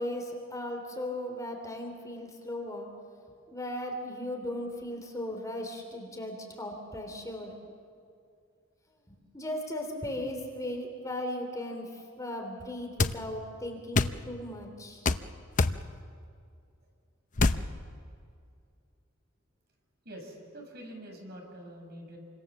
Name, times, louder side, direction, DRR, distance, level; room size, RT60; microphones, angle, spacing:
voice 1, 0.0-2.9 3.5-7.6 9.1-15.1, left 1 dB, 15° left, 2 dB, 3.2 m, -37 dB
sound 1, 13.0-13.2 14.0-14.2 15.1-15.2 15.6-15.8 17.4-17.6, left 3 dB, 40° left, 0.7 m, -24 dB
voice 2, 20.0-22.2, right 1 dB, 50° right, 1 dB, 6.1 m, -45 dB
28.5 x 25.0 x 7.3 m, 2.3 s
head